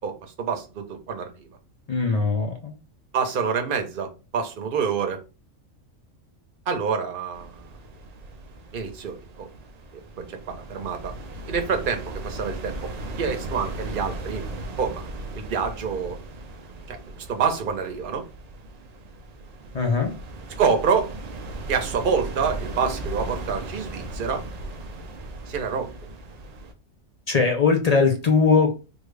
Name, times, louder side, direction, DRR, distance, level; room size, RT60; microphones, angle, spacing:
voice 1, 0.0-1.5 3.1-5.2 6.7-7.7 8.7-9.5 10.3-11.1 11.5-12.8 13.2-14.4 14.8-15.0 15.3-16.2 16.9-18.2 20.6-21.1 21.7-24.4 25.5-25.9, right 6 dB, 50° right, 0.8 m, -27 dB
voice 2, 1.9-2.7 19.7-20.1 27.3-28.7, left 4 dB, 50° left, 0.5 m, -20 dB
sound 1, 7.3-26.7, right 1 dB, 70° right, 0.3 m, -37 dB
3.5 x 2.4 x 3.2 m
omnidirectional pair, 1.4 m